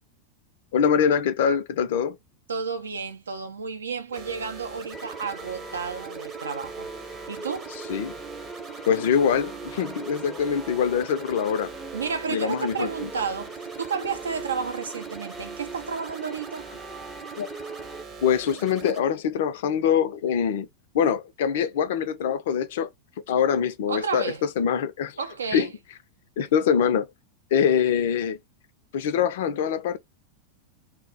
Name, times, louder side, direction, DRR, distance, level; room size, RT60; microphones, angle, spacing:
voice 1, 0.7-2.2 7.9-8.1 8.9-11.7 12.3-12.9 17.4-17.5 18.2-20.7 20.9-22.9 23.3-25.2 25.5-25.7 26.4-27.1 27.5-28.4 28.9-30.0, left 8 dB, 55° left, 0.4 m, -24 dB
voice 2, 2.5-6.9 7.3-7.7 11.9-16.7 23.9-24.4 25.2-25.7, right 5 dB, 70° right, 0.5 m, -31 dB
sound 1, 4.1-19.0, right 5 dB, 30° right, 0.8 m, -42 dB
sound 2, 4.9-18.0, right 3 dB, 5° right, 0.5 m, -41 dB
2.3 x 2.1 x 3.7 m
figure-of-eight pair, 90°, 0 cm